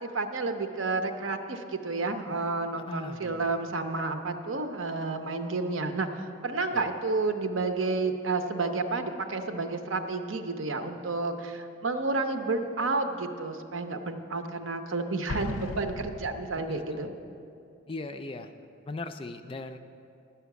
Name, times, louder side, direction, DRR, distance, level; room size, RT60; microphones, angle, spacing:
voice 1, 0.0-17.1, right 3 dB, 75° right, 7 dB, 0.7 m, -31 dB
voice 2, 2.9-3.6 6.7-7.0 16.5-17.1 17.9-18.5 18.9-19.8, left 2 dB, 25° left, 8 dB, 0.3 m, -39 dB
Explosion, 15.3-17.0, left 3 dB, 85° left, 0.5 m, -37 dB
11.5 x 5.7 x 8.1 m, 2.6 s
head